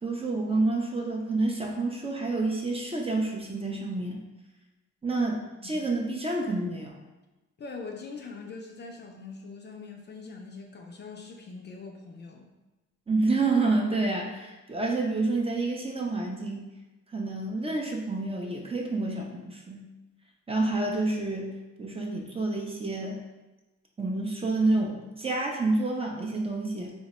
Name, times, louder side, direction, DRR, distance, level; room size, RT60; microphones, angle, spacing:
voice 1, 0.0-4.2 5.0-7.0 13.1-16.6 17.1-19.9 20.5-23.2 24.0-26.9, right 2 dB, 20° right, 0 dB, 0.5 m, -28 dB
voice 2, 7.6-12.5, left 4 dB, 35° left, 1 dB, 0.4 m, -42 dB
2.8 x 2.1 x 4.1 m, 1.1 s
cardioid pair, 90°, 30 cm